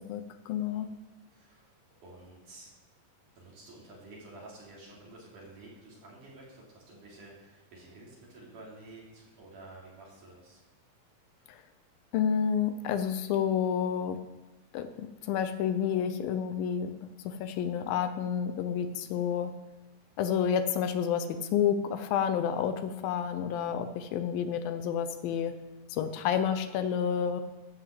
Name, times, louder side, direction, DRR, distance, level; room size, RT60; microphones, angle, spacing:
voice 1, 0.1-0.9 11.5-11.6 12.1-14.2 14.7-19.5 20.2-25.5 25.9-27.4, left 8 dB, 80° left, 10 dB, 2.5 m, -30 dB
voice 2, 1.3-1.7 2.0-2.7 3.4-10.6 11.4-11.5, right 2 dB, 60° right, -4 dB, 4.5 m, -51 dB
13.5 x 6.2 x 7.7 m, 1.1 s
omnidirectional pair, 4.2 m